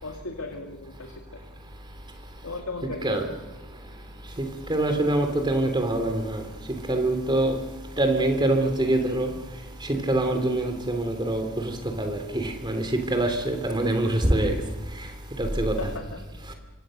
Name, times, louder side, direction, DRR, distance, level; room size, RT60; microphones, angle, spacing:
voice 1, 0.0-1.1 2.4-3.2 15.8-16.0, left 3 dB, 70° left, 2.3 m, -35 dB
voice 2, 4.7-6.4 6.9-7.5 8.0-9.3 9.8-14.6 15.4-15.8, right 1 dB, 20° right, 3.2 m, -24 dB
26.0 x 25.0 x 6.6 m
head